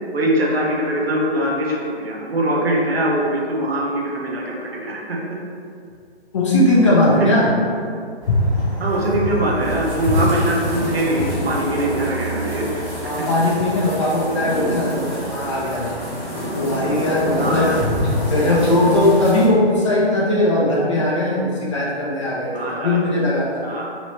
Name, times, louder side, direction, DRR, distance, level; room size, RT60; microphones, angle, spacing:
voice 1, 0.1-5.2 7.2-7.3 8.8-13.3 16.3-16.4 17.4-17.8 22.5-23.0 23.6-23.8, right 1 dB, 65° right, -2 dB, 0.9 m, -22 dB
voice 2, 6.3-7.5 13.0-15.9 16.5-23.5, left 1 dB, 30° left, -5 dB, 0.5 m, -19 dB
sound 1, 8.2-19.5, equal, 5° right, 0.7 m, -27 dB
3.0 x 3.0 x 3.0 m, 2.3 s
figure-of-eight pair, 140°, 33 cm